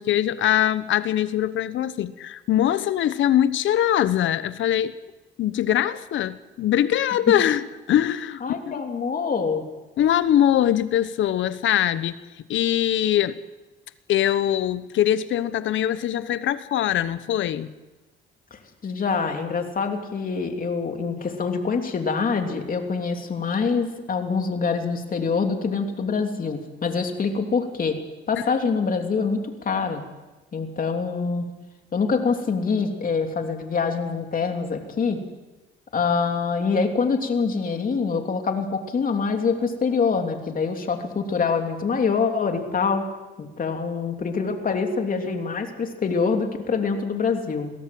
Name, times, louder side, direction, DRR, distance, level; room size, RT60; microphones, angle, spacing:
voice 1, 0.0-5.0 5.4-8.8 10.0-12.2 12.5-13.4 14.1-17.7 28.4-28.5, left 11 dB, 75° left, 14 dB, 1.1 m, -22 dB
voice 2, 8.4-9.6 18.5-28.0 28.3-30.0 30.5-31.5 31.9-35.2 35.9-43.1 43.4-47.7, left 5 dB, 45° left, 4 dB, 3.1 m, -25 dB
22.0 x 17.0 x 7.7 m, 1.1 s
cardioid pair, 90°, 20 cm